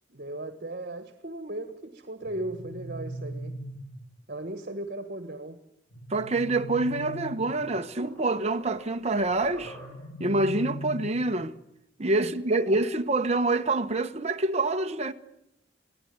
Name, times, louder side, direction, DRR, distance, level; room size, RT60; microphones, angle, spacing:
voice 1, 0.1-3.6 4.3-5.6 12.2-12.8, right 1 dB, 50° right, 1.6 m, -37 dB
sound 1, 2.2-4.2 5.9-7.9 9.6-11.6, equal, 90° left, 2.0 m, -40 dB
voice 2, 6.1-9.8 10.2-11.5 12.0-15.1, right 2 dB, 35° right, 1.0 m, -26 dB
sound 2, 7.2-7.3 7.7-10.2, right 1 dB, 15° left, 7.6 m, -47 dB
24.0 x 17.0 x 9.5 m
head